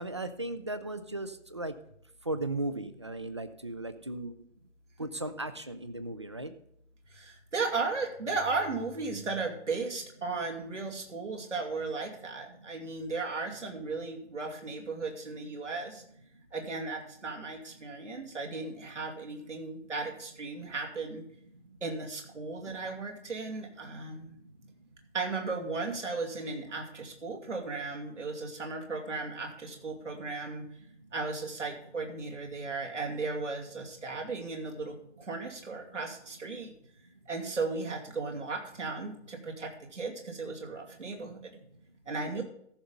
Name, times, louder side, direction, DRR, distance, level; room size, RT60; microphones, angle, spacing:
voice 1, 0.0-1.8 2.2-4.4 5.0-6.6 11.1-11.2 12.5-12.9 16.3-16.4 17.7-18.1 19.8-19.9 21.5-21.8 22.9-23.0 23.8-24.9 30.9-31.1 35.8-36.0 37.1-37.2 41.5-42.0, right 2 dB, 25° right, 11 dB, 0.4 m, -38 dB
voice 2, 7.1-16.0 16.5-21.2 21.8-24.4 25.1-30.7 31.1-36.7 37.3-41.6 42.1-42.4, right 3 dB, 80° right, 0 dB, 2.6 m, -36 dB
14.0 x 5.7 x 5.4 m, 0.69 s
figure-of-eight pair, 140°, 36 cm